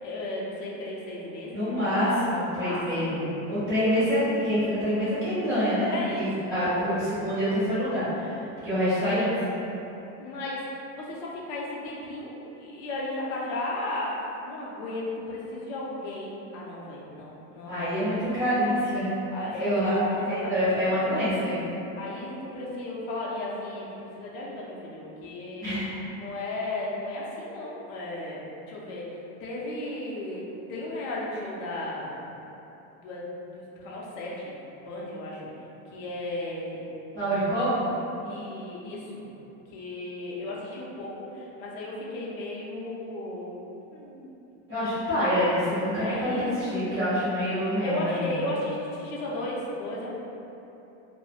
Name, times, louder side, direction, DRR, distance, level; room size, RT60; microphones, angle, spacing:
voice 1, 0.0-1.9 2.6-3.3 5.9-6.8 8.7-9.0 10.2-14.1 14.4-17.8 18.2-18.6 19.3-20.9 21.9-25.8 26.2-28.4 28.7-29.1 29.4-30.4 30.7-32.2 33.0-34.5 34.8-35.4 35.9-36.8 38.2-39.3 39.7-43.5 43.9-44.3 45.9-46.8 47.8-50.2, left 2 dB, 65° left, -5 dB, 0.6 m, -35 dB
voice 2, 1.5-9.4 17.7-19.1 19.6-21.6 25.6-25.9 37.1-37.9 44.7-48.3, equal, 10° left, -19 dB, 0.6 m, -26 dB
3.0 x 2.1 x 2.3 m, 3.0 s
supercardioid pair, 170°, 41 cm